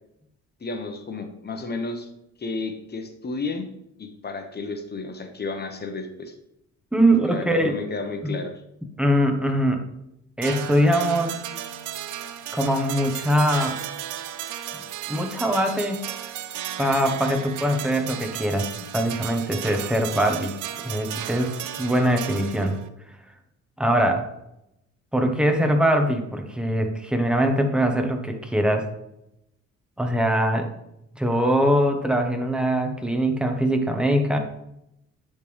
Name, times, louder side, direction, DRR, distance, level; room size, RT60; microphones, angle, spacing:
voice 1, 0.6-2.1 2.4-3.7 4.0-6.3 7.3-8.5, left 3 dB, 35° left, 6 dB, 1.0 m, -32 dB
voice 2, 6.9-7.8 8.2-8.4 9.0-9.8 10.4-11.3 12.5-13.8 14.7-14.8 15.1-16.0 16.8-20.5 20.8-21.5 21.8-22.8 23.8-24.3 25.1-28.9 30.0-30.7 31.2-34.4, equal, 5° right, 4 dB, 1.0 m, -22 dB
sound 1, 10.4-22.9, right 10 dB, 85° right, 0.5 m, -34 dB
9.9 x 3.5 x 3.3 m, 0.82 s
cardioid pair, 90°, 30 cm